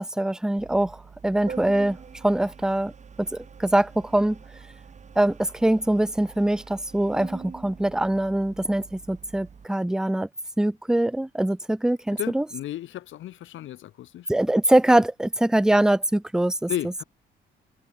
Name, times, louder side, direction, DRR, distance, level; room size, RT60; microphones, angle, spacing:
voice 1, 0.0-2.9 3.2-4.4 5.2-10.3 10.6-12.4 14.3-17.0, right 1 dB, 5° right, 0.5 m, -23 dB
Organ, 0.6-9.6, right 6 dB, 35° right, 1.4 m, -44 dB
voice 2, 12.1-14.3 16.7-17.0, left 13 dB, 75° left, 1.4 m, -34 dB
open air
cardioid pair, 90°, 20 cm